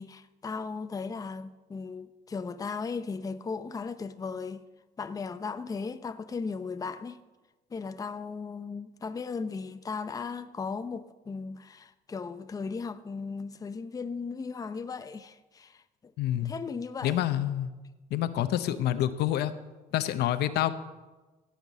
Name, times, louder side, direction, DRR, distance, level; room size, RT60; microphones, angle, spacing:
voice 1, 0.0-4.6 5.0-7.2 7.7-15.8 16.4-17.2, left 5 dB, 20° left, 0.6 m, -36 dB
voice 2, 16.2-16.5 17.0-17.7 18.1-19.5 19.9-20.7, left 12 dB, 75° left, 0.8 m, -27 dB
16.5 x 5.9 x 8.3 m
cardioid pair, 110°, 17 cm